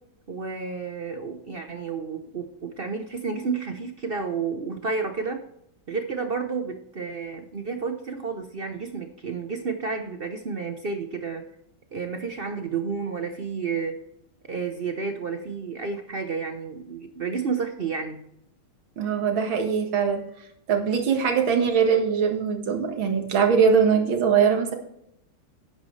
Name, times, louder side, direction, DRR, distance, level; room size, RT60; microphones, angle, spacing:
voice 1, 0.3-5.4 5.9-11.4 11.9-14.0 14.5-18.2, right 5 dB, 55° right, 6 dB, 0.6 m, -31 dB
voice 2, 19.0-20.2 20.7-24.8, right 6 dB, 75° right, 4 dB, 2.4 m, -22 dB
11.0 x 9.5 x 3.2 m, 0.75 s
omnidirectional pair, 2.2 m